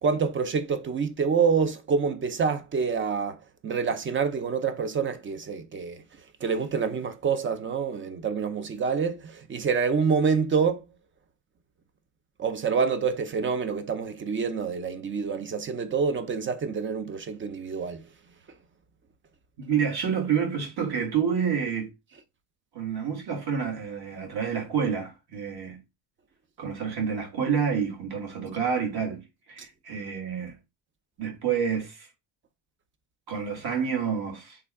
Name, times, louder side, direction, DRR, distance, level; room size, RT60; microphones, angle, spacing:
voice 1, 0.0-6.0 6.4-10.8 12.4-18.0, right 5 dB, 30° right, 0.4 m, -27 dB
voice 2, 19.6-21.9 22.7-25.8 26.6-30.5 31.2-32.1 33.3-34.6, right 7 dB, 55° right, 1.7 m, -28 dB
3.4 x 2.3 x 3.4 m
cardioid pair, 115°, 44 cm